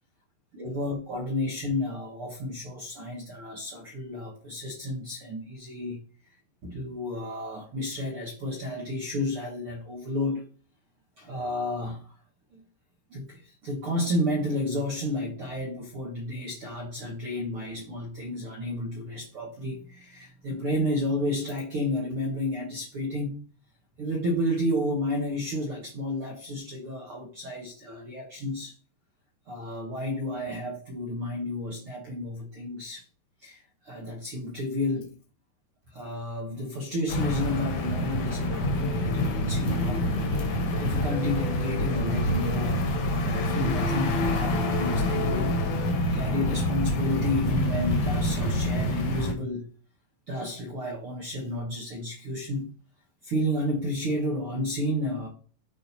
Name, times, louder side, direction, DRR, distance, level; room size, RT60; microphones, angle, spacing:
voice 1, 0.5-6.0 6.6-10.5 11.2-12.1 12.5-12.6 13.1-23.4 24.0-28.7 29.5-33.0 33.4-35.2 35.9-40.1 40.4-45.6 46.1-49.7 50.3-52.7 53.2-55.3, left 1 dB, 75° right, 1.2 m, -31 dB
sound 1, 37.1-45.9, left 3 dB, 70° left, 1.4 m, -36 dB
sound 2, 37.1-49.3, left 1 dB, 55° left, 1.8 m, -27 dB
11.0 x 4.3 x 4.2 m
omnidirectional pair, 4.8 m